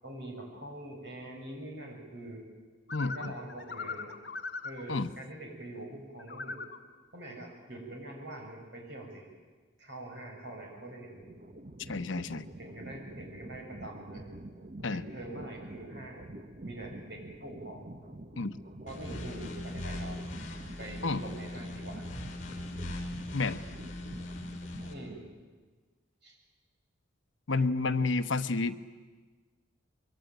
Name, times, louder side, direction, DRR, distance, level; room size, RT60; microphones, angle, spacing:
voice 1, 0.0-2.5 3.0-4.2 4.6-6.6 7.1-9.3 9.8-11.3 12.6-14.3 14.9-16.2 16.6-17.9 18.8-20.3 20.8-22.1 24.8-25.3 26.2-26.4 27.5-28.1, right 1 dB, 60° right, 1 dB, 7.0 m, -44 dB
voice 2, 2.9-3.3 4.9-5.1 11.8-12.5 14.8-15.0 18.4-18.6 21.0-21.2 23.3-23.6 27.5-28.8, left 3 dB, 75° left, 11 dB, 0.9 m, -30 dB
sound 1, 2.9-4.8 6.2-6.8, left 4 dB, 60° left, 2.3 m, -40 dB
sound 2, 11.2-25.4, right 1 dB, 40° right, 1.1 m, -47 dB
sound 3, 18.9-24.9, left 1 dB, 45° left, 4.8 m, -40 dB
24.5 x 23.5 x 9.3 m, 1.4 s
head